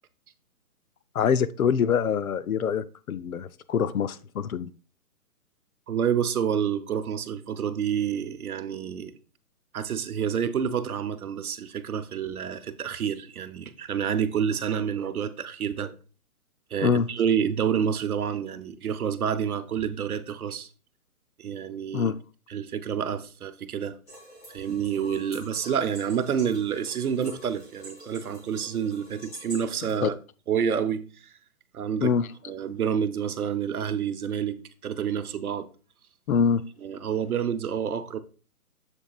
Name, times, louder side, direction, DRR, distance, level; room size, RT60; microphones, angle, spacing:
voice 1, 1.1-4.7 16.8-17.1 21.9-22.1 30.0-30.1 32.0-32.3 36.3-36.6, left 7 dB, 65° left, 0.6 m, -24 dB
voice 2, 5.9-9.1 9.7-15.9 16.7-20.7 21.4-22.1 22.5-24.0 24.5-30.2 30.5-31.3 31.7-32.1 32.4-35.7 36.8-38.2, right 8 dB, 70° right, 0.9 m, -28 dB
sound 1, 24.1-30.0, right 1 dB, 10° left, 2.0 m, -46 dB
7.2 x 7.1 x 2.4 m
hypercardioid pair, 170°, 46 cm